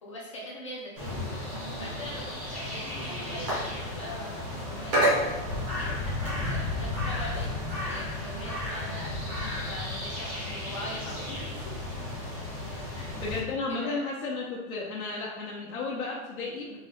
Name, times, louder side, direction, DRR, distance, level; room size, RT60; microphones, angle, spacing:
voice 1, 0.0-1.4 1.8-5.3 5.8-11.6 12.9-13.2 13.7-14.1, left 1 dB, 25° left, -4 dB, 0.4 m, -42 dB
sound 1, 1.0-13.4, left 1 dB, 15° right, 0.6 m, -32 dB
voice 2, 13.0-16.8, left 3 dB, 85° left, -4 dB, 0.9 m, -33 dB
3.7 x 2.7 x 3.3 m, 1.1 s
supercardioid pair, 180°, 42 cm